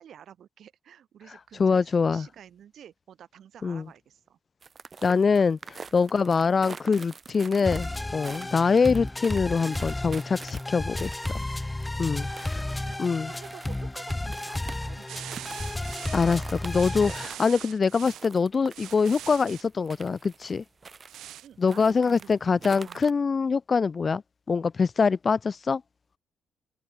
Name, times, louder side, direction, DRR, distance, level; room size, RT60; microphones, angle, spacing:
voice 1, 0.0-4.4 12.3-15.4 21.4-23.1, right 9 dB, 65° right, 5.1 m, -50 dB
voice 2, 1.6-2.3 3.6-3.8 5.0-11.4 12.0-12.6 13.0-13.3 16.1-20.6 21.6-24.2 24.5-25.8, left 5 dB, 35° left, 0.3 m, -24 dB
sound 1, 4.6-21.4 21.7-23.1, right 5 dB, 35° right, 1.4 m, -46 dB
sound 2, 7.7-17.3, left 1 dB, 10° left, 1.4 m, -33 dB
sound 3, 15.1-18.3 18.7-19.7 21.1-21.5, right 13 dB, 80° right, 1.6 m, -42 dB
cardioid pair, 90°, 0 cm